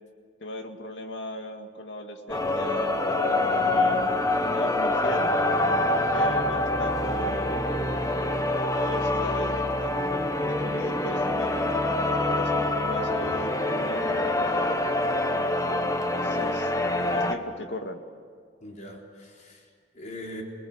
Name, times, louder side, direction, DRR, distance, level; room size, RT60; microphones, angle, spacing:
voice 1, 0.4-5.3 5.9-7.8 8.5-10.0 10.5-14.4 15.2-18.0, left 1 dB, 80° left, 4 dB, 2.2 m, -38 dB
sound 1, 2.3-17.3, left 2 dB, 20° left, 1.3 m, -25 dB
voice 2, 18.6-20.4, left 1 dB, 45° left, -1 dB, 4.1 m, -42 dB
27.0 x 20.0 x 8.1 m, 2.1 s
head